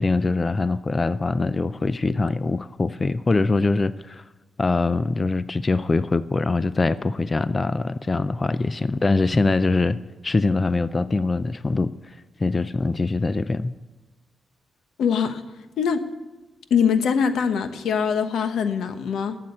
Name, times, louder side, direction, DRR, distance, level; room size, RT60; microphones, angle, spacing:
voice 1, 0.0-4.2 4.6-10.0 10.2-13.7, left 3 dB, 25° left, 15 dB, 0.3 m, -23 dB
voice 2, 15.0-15.4 15.8-16.0 16.7-19.4, left 6 dB, 85° left, 9 dB, 1.1 m, -22 dB
12.0 x 7.5 x 8.6 m, 1.2 s
wide cardioid pair, 150°, 0 cm